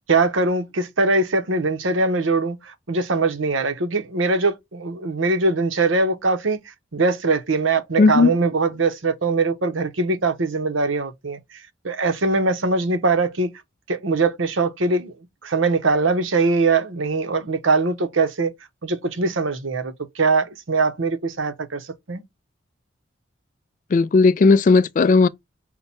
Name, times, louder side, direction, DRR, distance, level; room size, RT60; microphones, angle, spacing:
voice 1, 0.1-6.6 6.9-11.6 11.8-13.5 13.9-15.1 15.4-18.5 18.8-22.2, right 3 dB, 85° right, 0.9 m, -22 dB
voice 2, 8.0-8.3 23.9-25.3, left 4 dB, 40° left, 0.3 m, -15 dB
5.7 x 2.2 x 4.1 m
head